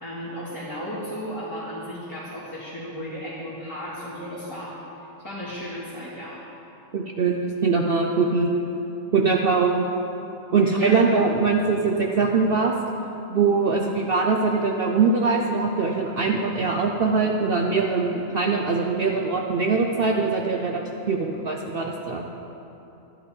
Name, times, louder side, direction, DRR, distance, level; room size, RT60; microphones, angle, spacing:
voice 1, 0.0-4.8 5.2-6.4 10.5-11.0, equal, 15° left, -12 dB, 2.1 m, -34 dB
voice 2, 6.9-8.5 9.1-9.9 10.5-12.7 13.3-22.3, right 4 dB, 55° right, 1 dB, 0.7 m, -22 dB
11.5 x 11.0 x 4.5 m, 3.0 s
omnidirectional pair, 1.4 m